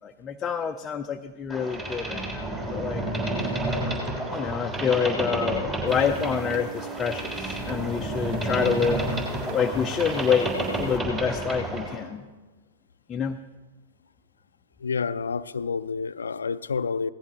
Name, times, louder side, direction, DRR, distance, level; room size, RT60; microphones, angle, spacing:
voice 1, 0.0-3.1 4.3-9.0 9.5-12.2 13.1-13.4, left 7 dB, 20° left, 5 dB, 0.5 m, -27 dB
Boat Water vehicle, 1.5-12.0, right 1 dB, 20° right, 3.4 m, -30 dB
sound 1, 5.9-11.0, right 10 dB, 50° right, 0.8 m, -43 dB
voice 2, 14.8-17.1, left 5 dB, 85° left, 15 dB, 0.4 m, -29 dB
17.0 x 14.0 x 3.0 m, 1.3 s
hypercardioid pair, 110°, 0 cm